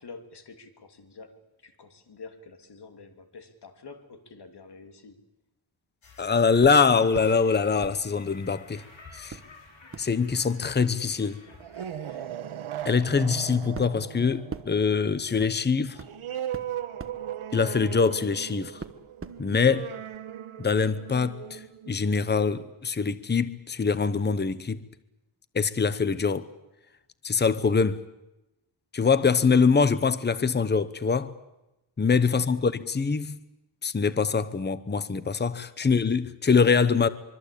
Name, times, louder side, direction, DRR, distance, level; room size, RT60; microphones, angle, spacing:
voice 1, 0.0-5.2 32.3-32.5 35.8-35.9, left 4 dB, 50° left, 3.0 m, -47 dB
sound 1, 6.0-12.2, left 4 dB, 70° left, 6.3 m, -51 dB
voice 2, 6.2-8.8 9.1-9.4 10.0-11.4 12.8-16.0 17.5-18.8 19.4-19.9 20.6-24.8 25.5-26.5 27.2-28.0 28.9-31.3 32.0-33.4 33.8-37.1, left 5 dB, 20° left, 0.9 m, -24 dB
sound 2, 6.6-7.4 7.8-8.8 9.3-18.4 18.8-19.8 20.1-20.2, right 4 dB, 25° right, 1.2 m, -45 dB
sound 3, 11.5-22.7, right 10 dB, 80° right, 1.4 m, -38 dB
24.5 x 24.0 x 8.5 m
wide cardioid pair, 165°, 49 cm